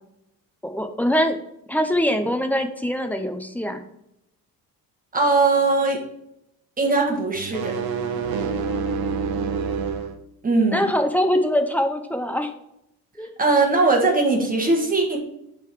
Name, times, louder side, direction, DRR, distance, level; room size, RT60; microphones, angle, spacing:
voice 1, 0.6-1.4 1.7-3.8 10.7-12.5 13.2-13.3, equal, 5° left, 6 dB, 0.6 m, -23 dB
voice 2, 5.1-6.0 6.8-7.8 10.4-10.9 13.4-15.2, right 3 dB, 20° right, 1 dB, 1.5 m, -20 dB
sound 1, 7.4-10.2, right 5 dB, 70° right, 0.9 m, -27 dB
9.0 x 3.9 x 4.6 m, 0.82 s
cardioid pair, 145°, 38 cm